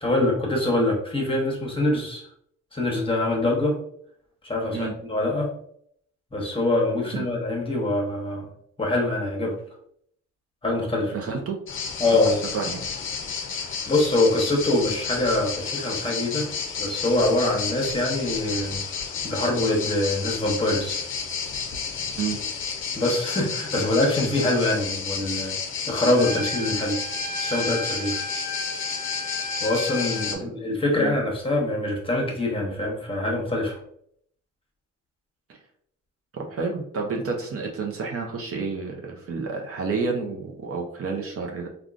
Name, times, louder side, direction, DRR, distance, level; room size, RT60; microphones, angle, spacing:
voice 1, 0.0-2.3 2.7-3.8 4.4-5.5 6.3-8.5 8.8-9.6 10.6-11.1 12.0-12.4 13.9-16.5 16.8-18.8 19.2-21.0 22.9-25.6 25.9-27.0 27.4-28.2 28.9-29.3 29.6-33.8, left 2 dB, 20° left, -1 dB, 1.0 m, -24 dB
voice 2, 11.1-11.6 12.5-12.8 22.2-22.4 30.3-30.5 31.0-31.1 36.3-41.7, right 4 dB, 50° right, 1 dB, 0.7 m, -30 dB
sound 1, 11.7-30.4, left 6 dB, 40° left, 0.6 m, -31 dB
Trumpet, 26.1-30.4, left 1 dB, 70° right, 1.1 m, -34 dB
3.6 x 2.3 x 2.5 m, 0.67 s
cardioid pair, 90°, 30 cm